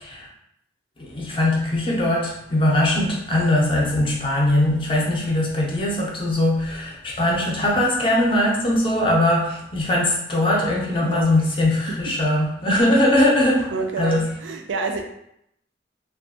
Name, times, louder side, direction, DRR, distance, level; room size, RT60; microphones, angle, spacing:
voice 1, 1.0-13.7 14.0-14.2, left 1 dB, 30° left, -2 dB, 0.5 m, -20 dB
voice 2, 13.7-15.0, right 3 dB, 80° right, 3 dB, 0.4 m, -28 dB
2.6 x 2.3 x 2.6 m, 0.76 s
head